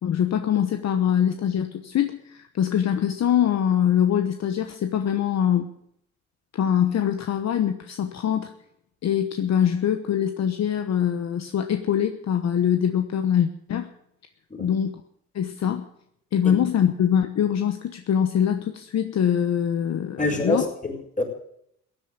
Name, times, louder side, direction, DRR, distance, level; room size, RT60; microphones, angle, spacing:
voice 1, 0.0-5.7 6.5-8.5 9.0-13.9 14.6-14.9 15.3-15.8 16.3-20.7, left 9 dB, 60° left, 8 dB, 1.1 m, -23 dB
voice 2, 20.2-21.2, left 2 dB, 25° left, 1 dB, 5.2 m, -26 dB
16.0 x 8.9 x 9.2 m, 0.71 s
cardioid pair, 90°, 30 cm